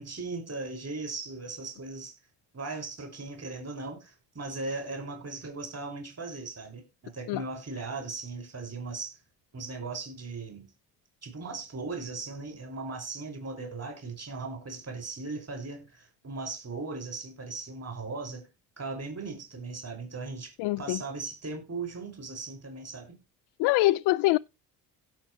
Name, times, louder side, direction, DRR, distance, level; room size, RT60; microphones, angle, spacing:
voice 1, 0.0-2.2 2.5-9.2 9.5-10.7 11.2-18.5 18.8-20.5 20.8-23.2, right 3 dB, 35° right, 6.0 m, -38 dB
voice 2, 20.6-21.0 23.6-24.4, left 18 dB, 70° left, 0.5 m, -24 dB
17.0 x 6.0 x 3.2 m
supercardioid pair, 70°, 41 cm